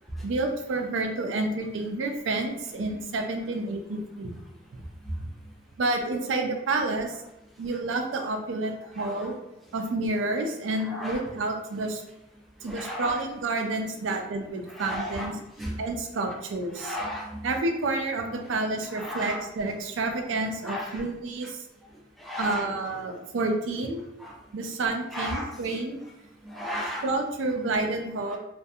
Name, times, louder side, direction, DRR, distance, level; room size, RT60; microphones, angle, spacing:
voice 1, 0.2-4.3 4.7-4.8 5.8-7.2 7.6-9.3 9.7-12.0 12.6-15.4 15.8-17.0 17.4-21.6 22.4-24.0 24.5-26.0 27.0-28.4, right 2 dB, 85° right, 4 dB, 0.4 m, -29 dB
voice 2, 9.0-9.3 10.9-11.2 12.7-13.2 14.7-15.3 15.6-15.7 16.8-17.5 18.9-19.4 20.6-21.0 22.2-22.6 24.2-24.3 25.1-25.8 26.4-27.1, left 1 dB, ahead, -3 dB, 0.4 m, -34 dB
2.5 x 2.3 x 2.7 m, 0.93 s
head